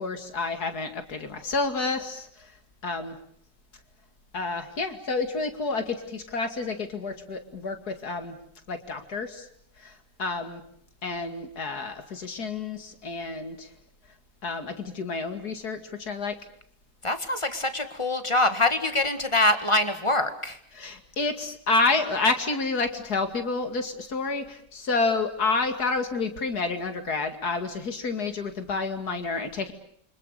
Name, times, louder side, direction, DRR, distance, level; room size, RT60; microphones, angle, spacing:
voice 1, 0.0-2.5 2.8-3.2 4.3-8.4 8.7-9.5 9.8-10.6 11.0-13.7 14.4-16.4 20.7-29.7, left 3 dB, 65° left, 7 dB, 2.8 m, -29 dB
voice 2, 17.0-20.6, left 2 dB, 20° left, 9 dB, 1.7 m, -24 dB
28.5 x 25.5 x 6.6 m, 0.65 s
omnidirectional pair, 1.8 m